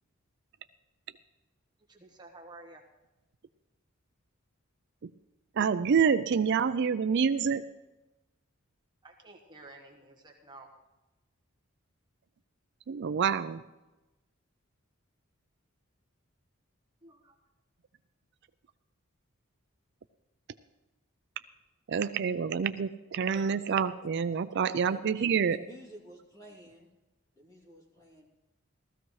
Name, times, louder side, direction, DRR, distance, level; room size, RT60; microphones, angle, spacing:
voice 1, 1.9-2.8 9.0-10.7 17.0-17.3, right 2 dB, 20° right, 1.3 m, -51 dB
voice 2, 5.5-7.6 12.9-13.6 21.9-25.6, right 6 dB, 55° right, 0.4 m, -27 dB
voice 3, 24.9-26.9 27.3-28.2, right 1 dB, 15° left, 2.6 m, -51 dB
16.5 x 14.0 x 3.2 m
head